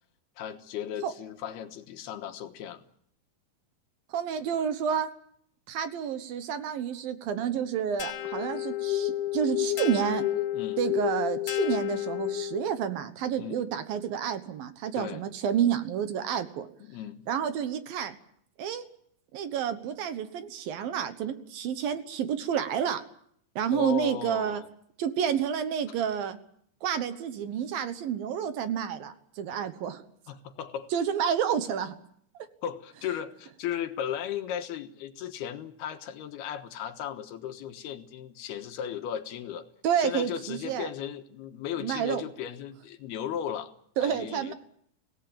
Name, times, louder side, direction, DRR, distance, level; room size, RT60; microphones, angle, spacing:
voice 1, 0.4-2.8 10.5-10.8 13.3-13.6 15.0-15.2 16.8-17.2 23.7-24.7 30.3-30.9 32.6-39.7 40.0-43.7 44.0-44.5, left 9 dB, 75° left, 7 dB, 3.2 m, -36 dB
voice 2, 4.1-5.1 5.7-10.2 10.8-16.7 17.3-18.2 18.6-18.8 19.3-23.0 23.6-24.6 25.0-26.4 26.8-30.0 30.9-32.0 39.8-40.9 41.8-42.2 44.0-44.5, right 8 dB, 65° right, 10 dB, 2.8 m, -29 dB
sound 1, 8.0-12.8, left 14 dB, 50° left, 3.5 m, -30 dB
25.5 x 18.0 x 8.8 m, 0.68 s
omnidirectional pair, 4.7 m